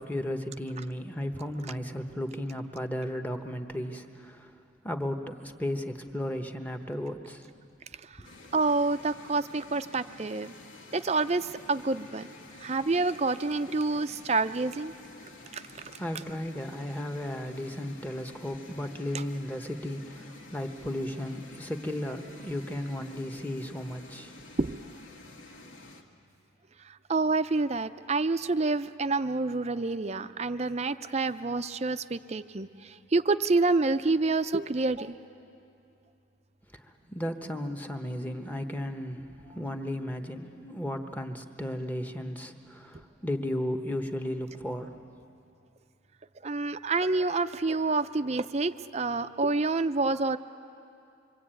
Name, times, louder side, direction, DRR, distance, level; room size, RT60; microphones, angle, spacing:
voice 1, 0.0-4.5 4.8-7.5 16.0-24.3 36.7-44.9, left 1 dB, 10° left, 5 dB, 1.1 m, -35 dB
sound 1, 8.2-26.0, left 2 dB, 85° left, 2.1 m, -50 dB
voice 2, 8.5-10.5 10.9-12.3 12.6-14.9 15.5-15.8 19.1-19.2 24.6-24.8 26.9-35.2 46.4-50.4, right 3 dB, 35° right, 11 dB, 0.5 m, -28 dB
25.5 x 24.5 x 9.0 m, 2.6 s
head